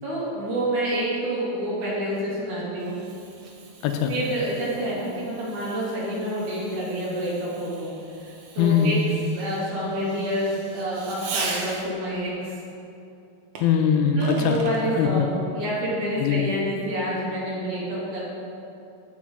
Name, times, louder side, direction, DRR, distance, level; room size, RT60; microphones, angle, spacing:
voice 1, 0.0-3.0 4.1-7.9 8.2-8.3 8.6-9.0 9.3-12.5 14.2-18.2, equal, 55° right, -7 dB, 3.6 m, -28 dB
Fireworks, 2.2-12.1 13.5-14.8, right 4 dB, 85° right, 1.4 m, -40 dB
voice 2, 8.6-9.0 13.6-14.6 15.0-15.3 16.2-16.4, left 7 dB, 90° left, 4 dB, 2.7 m, -21 dB
15.0 x 5.3 x 5.0 m, 2.7 s
omnidirectional pair, 4.6 m